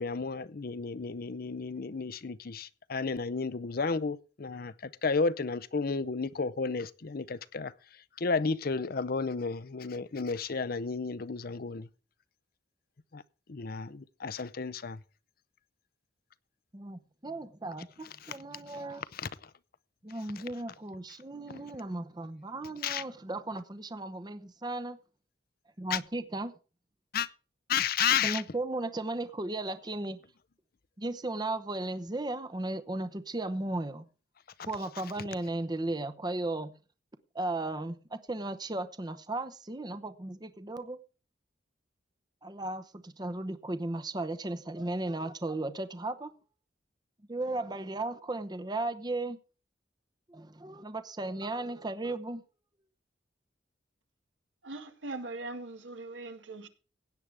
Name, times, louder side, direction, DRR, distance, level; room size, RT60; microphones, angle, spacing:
voice 1, 0.0-7.7 8.2-11.9 13.1-13.2 13.5-15.0 18.2-18.4 18.7-18.8 19.1-19.3 22.8-23.0 25.9-26.0 27.1-27.3 27.7-28.4, left 5 dB, 55° left, 0.6 m, -32 dB
voice 2, 16.7-19.0 20.0-25.0 25.8-26.5 28.2-30.2 31.0-34.1 34.7-36.7 37.3-41.0 42.4-46.3 47.3-49.4 50.3-52.4, right 2 dB, 20° right, 0.8 m, -35 dB
voice 3, 54.6-56.7, right 2 dB, 80° right, 1.8 m, -40 dB
16.5 x 9.2 x 3.4 m
head